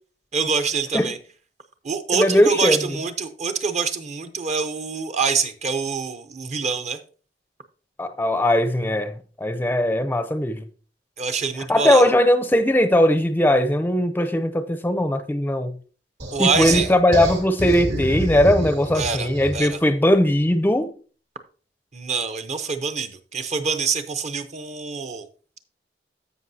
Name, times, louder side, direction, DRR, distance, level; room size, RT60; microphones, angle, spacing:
voice 1, 0.3-1.2 1.8-7.0 11.2-12.0 16.3-16.9 18.9-19.8 21.9-25.2, right 5 dB, 40° right, 0.7 m, -25 dB
voice 2, 2.1-2.8 8.0-9.1 9.4-10.6 11.7-15.8 16.4-20.9, left 1 dB, 10° left, 0.5 m, -19 dB
sound 1, 16.2-19.7, equal, 75° right, 2.3 m, -28 dB
15.0 x 5.5 x 2.7 m
head